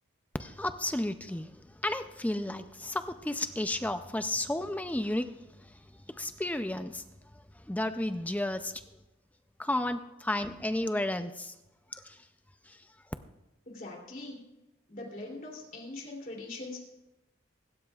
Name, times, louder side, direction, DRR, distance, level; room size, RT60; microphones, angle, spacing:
voice 1, 0.4-1.5 1.8-5.3 6.2-7.0 7.7-8.7 9.6-11.5 11.9-12.0, left 1 dB, 5° left, 9 dB, 0.4 m, -32 dB
voice 2, 13.7-14.4 14.9-16.8, left 2 dB, 40° left, -2 dB, 2.9 m, -42 dB
25.5 x 12.5 x 2.4 m, 0.95 s
head